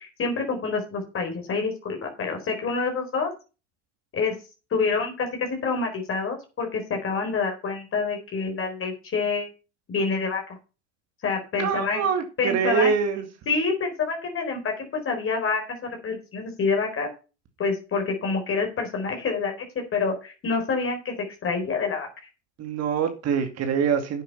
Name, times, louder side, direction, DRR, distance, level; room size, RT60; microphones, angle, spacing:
voice 1, 0.0-3.3 4.1-4.4 4.7-9.5 9.9-10.4 11.2-12.0 12.4-12.9 13.5-17.1 17.6-22.1, left 4 dB, 40° left, 2 dB, 4.3 m, -27 dB
voice 2, 11.6-13.2 22.6-24.2, right 6 dB, 50° right, 5 dB, 2.4 m, -24 dB
9.6 x 8.3 x 5.6 m, 0.32 s
hypercardioid pair, 85°, 34 cm